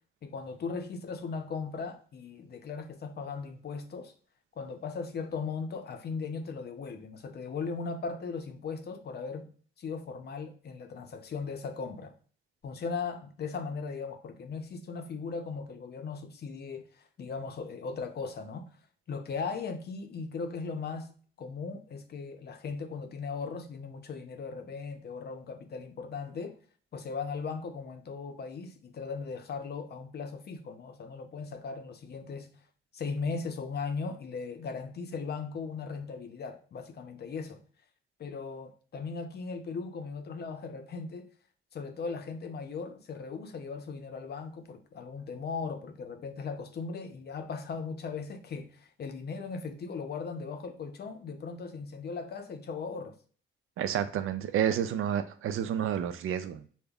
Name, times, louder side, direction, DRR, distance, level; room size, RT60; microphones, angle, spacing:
voice 1, 0.2-4.1 4.6-9.5 9.8-12.1 12.6-18.7 19.1-21.1 21.4-26.6 26.9-32.5 32.9-37.6 38.2-41.3 41.7-53.1, left 5 dB, 50° left, 0.6 m, -38 dB
voice 2, 53.8-56.7, right 9 dB, 85° right, 0.4 m, -30 dB
5.1 x 2.1 x 2.3 m
cardioid pair, 120°, 21 cm